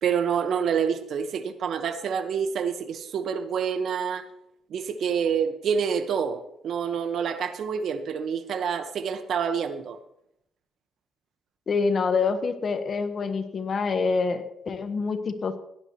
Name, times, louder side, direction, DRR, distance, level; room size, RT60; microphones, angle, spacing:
voice 1, 0.0-4.2 4.7-10.0, right 7 dB, 65° right, 8 dB, 1.3 m, -27 dB
voice 2, 11.7-15.6, left 4 dB, 45° left, 8 dB, 1.3 m, -26 dB
17.0 x 10.5 x 3.1 m, 0.78 s
cardioid pair, 90°, 0 cm